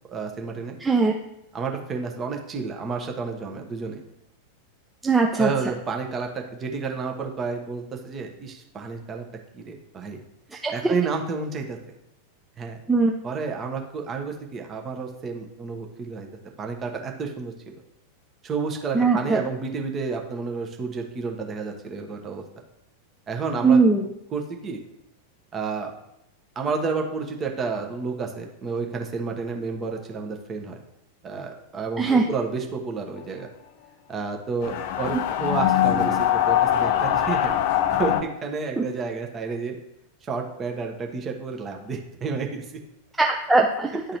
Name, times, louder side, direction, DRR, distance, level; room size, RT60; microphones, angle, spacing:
voice 1, 0.1-0.8 1.5-4.0 5.4-9.2 9.5-10.2 10.7-11.8 12.6-12.8 13.2-16.3 16.6-17.5 18.4-22.4 23.3-23.8 24.3-24.8 25.5-25.9 26.5-30.8 31.2-33.5 34.1-37.5 37.9-39.7 40.2-42.8, right 4 dB, 25° right, 3 dB, 1.0 m, -30 dB
voice 2, 0.8-1.1 5.0-5.5 10.5-10.9 12.9-13.1 18.9-19.4 23.6-24.1 32.0-32.2 38.8-38.9 43.2-44.0, right 4 dB, 10° right, 1 dB, 0.5 m, -20 dB
sound 1, 34.6-38.2, left 11 dB, 50° left, 0.5 m, -22 dB
10.5 x 3.8 x 3.0 m, 0.83 s
figure-of-eight pair, 90°, 0 cm